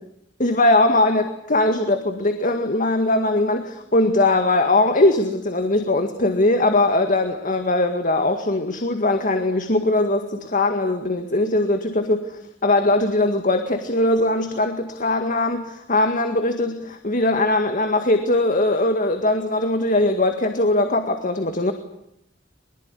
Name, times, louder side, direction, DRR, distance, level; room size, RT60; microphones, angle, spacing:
voice 1, 0.4-1.2 1.5-21.7, left 2 dB, 45° left, 7 dB, 1.9 m, -20 dB
23.0 x 21.5 x 9.9 m, 0.79 s
head